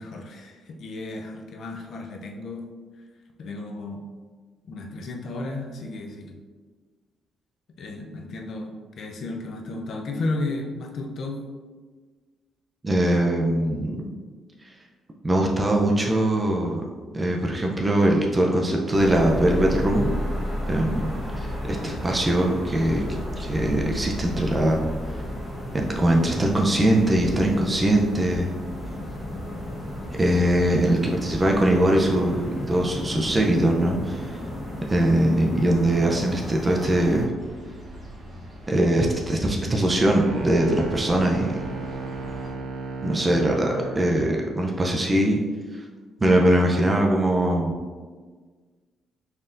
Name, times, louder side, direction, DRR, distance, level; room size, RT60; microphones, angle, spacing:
voice 1, 0.0-2.7 3.4-4.0 4.7-6.4 7.8-11.4, left 2 dB, 65° left, 2 dB, 0.5 m, -33 dB
voice 2, 12.8-14.1 15.2-16.8 17.1-20.1 20.7-21.1 21.4-23.0 23.4-24.8 25.7-28.5 30.2-34.4 34.9-37.3 38.7-41.5 43.0-45.4 45.7-45.8 46.2-47.7, right 1 dB, 25° right, 0 dB, 0.5 m, -21 dB
sound 1, 18.9-37.3, equal, ahead, 1.1 m, -33 dB
sound 2, 37.4-42.5, equal, 40° right, 1.1 m, -42 dB
sound 3, 40.2-44.1, right 3 dB, 80° right, 0.5 m, -34 dB
4.3 x 3.4 x 2.5 m, 1.5 s
cardioid pair, 90°, 0 cm